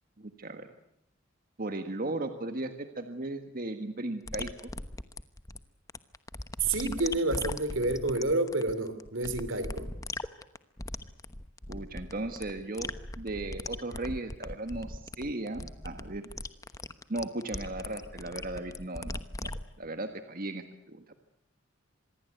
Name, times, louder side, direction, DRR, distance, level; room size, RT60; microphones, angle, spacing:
voice 1, 0.2-0.7 1.6-4.7 11.7-12.9 13.2-16.3 17.1-19.5 19.8-21.0, right 2 dB, 45° right, 7 dB, 1.5 m, -36 dB
sound 1, 4.3-19.6, left 2 dB, 15° left, 1.0 m, -39 dB
voice 2, 6.6-9.9, right 2 dB, 75° right, 12 dB, 2.9 m, -29 dB
26.0 x 21.0 x 8.1 m, 0.80 s
head